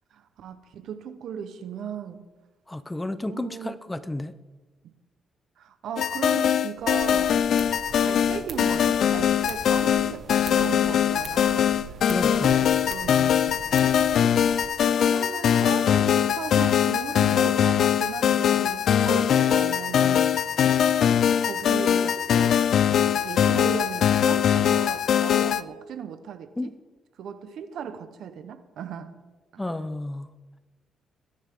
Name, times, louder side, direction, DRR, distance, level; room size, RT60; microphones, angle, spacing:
voice 1, 0.1-2.3 3.3-3.8 5.6-7.5 7.9-13.7 14.8-20.6 21.4-22.7 22.9-26.8 27.2-29.2 29.5-29.6, right 7 dB, 70° right, 1.1 m, -37 dB
voice 2, 2.7-4.3 12.1-12.6 26.6-26.7 29.6-30.3, left 2 dB, 10° left, 0.8 m, -32 dB
sound 1, 6.0-25.6, left 9 dB, 65° left, 0.5 m, -22 dB
sound 2, 6.8-14.7, right 5 dB, 50° right, 1.5 m, -42 dB
22.0 x 10.5 x 3.8 m
cardioid pair, 90°, 0 cm